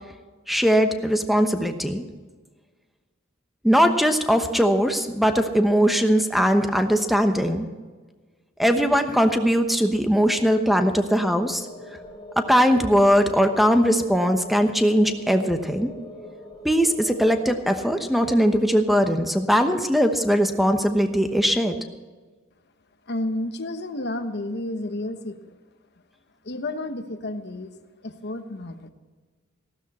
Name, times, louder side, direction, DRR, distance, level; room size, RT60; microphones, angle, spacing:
voice 1, 0.5-2.0 3.6-7.7 8.6-11.7 12.4-15.9 16.6-21.7, equal, ahead, 7 dB, 1.0 m, -20 dB
sound 1, 11.1-17.9, left 1 dB, 20° left, 3.0 m, -43 dB
voice 2, 23.1-25.6 26.4-27.7 28.0-28.9, left 1 dB, 55° left, 8 dB, 1.1 m, -31 dB
15.0 x 12.5 x 4.2 m, 1.4 s
head